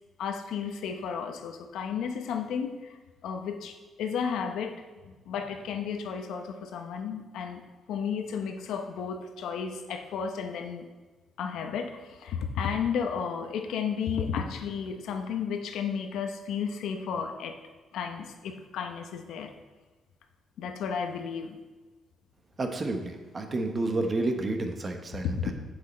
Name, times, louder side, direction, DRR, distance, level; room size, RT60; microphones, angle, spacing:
voice 1, 0.2-7.6 7.9-10.9 11.4-17.6 17.9-19.5 20.6-21.6 25.1-25.5, left 6 dB, 80° left, 5 dB, 0.8 m, -33 dB
voice 2, 22.6-25.5, right 2 dB, 35° right, 5 dB, 1.1 m, -30 dB
7.9 x 6.5 x 4.3 m, 1.3 s
cardioid pair, 90°, 0 cm